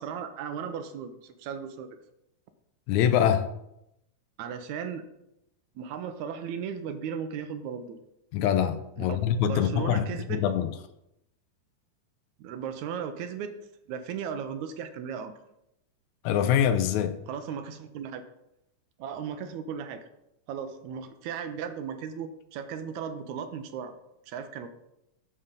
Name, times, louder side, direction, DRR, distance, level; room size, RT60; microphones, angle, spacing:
voice 1, 0.0-1.9 4.4-5.0 5.8-8.0 9.0-9.2 9.5-10.4 12.4-13.6 13.9-15.3 17.3-18.2 19.0-20.0 20.5-24.0 24.3-24.7, right 7 dB, 80° right, 2.0 m, -36 dB
voice 2, 2.9-3.5 8.3-10.7 16.2-17.2, left 9 dB, 80° left, 1.9 m, -24 dB
11.0 x 4.3 x 5.1 m
omnidirectional pair, 3.4 m